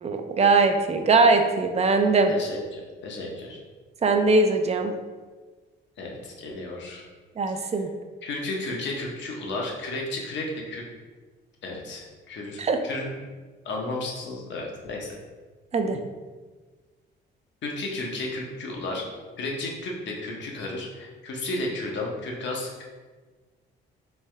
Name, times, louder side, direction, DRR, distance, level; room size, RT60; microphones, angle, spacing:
voice 1, 0.0-2.3 4.0-4.9 7.4-7.9 12.6-12.8 15.7-16.0, right 3 dB, 35° right, 6 dB, 0.4 m, -21 dB
voice 2, 2.3-3.6 6.0-7.0 7.6-7.7 8.2-10.8 11.6-13.1 13.6-15.2 15.9-16.0 17.6-19.0 19.4-22.8, left 2 dB, 65° left, 0 dB, 0.9 m, -33 dB
3.5 x 3.4 x 3.3 m, 1.4 s
cardioid pair, 90°, 20 cm